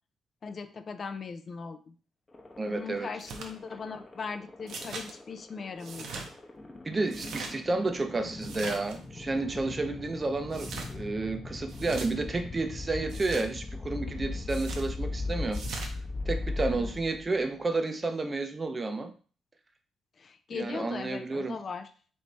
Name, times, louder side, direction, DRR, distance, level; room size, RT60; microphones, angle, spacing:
voice 1, 0.4-1.9 2.7-6.3 16.7-17.0 20.2-21.9, left 5 dB, 45° left, 9 dB, 0.4 m, -39 dB
sound 1, 2.3-17.4, left 3 dB, 25° left, 0.9 m, -39 dB
voice 2, 2.6-3.1 6.8-15.6 16.2-19.1 20.5-21.6, right 3 dB, 30° right, 7 dB, 0.6 m, -31 dB
sound 2, 3.2-3.5 4.7-5.1 5.8-6.3 7.1-7.5 8.4-9.0 10.5-10.9 11.7-12.1 13.1-13.5 14.5-14.9 15.5-15.9, right 4 dB, 70° right, 0.8 m, -40 dB
3.2 x 3.2 x 4.0 m, 0.41 s
cardioid pair, 90°, 0 cm